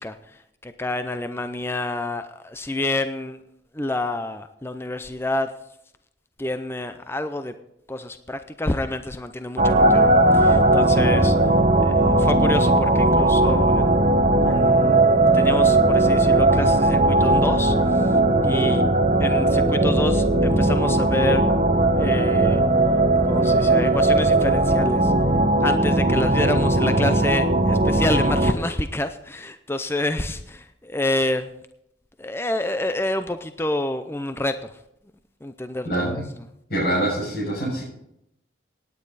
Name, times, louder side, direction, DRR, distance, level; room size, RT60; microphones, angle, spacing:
voice 1, 0.0-3.4 3.7-5.5 6.4-7.5 7.9-11.4 11.8-13.8 14.4-18.8 19.2-21.4 22.0-22.6 23.2-25.1 25.6-31.5 32.2-34.8 35.4-36.2, left 1 dB, 15° left, 9 dB, 0.5 m, -28 dB
sound 1, 9.6-28.5, right 2 dB, 45° right, 1.1 m, -18 dB
voice 2, 35.8-36.2 36.7-37.8, right 1 dB, 55° left, -9 dB, 6.6 m, -24 dB
17.5 x 9.6 x 4.1 m, 0.77 s
head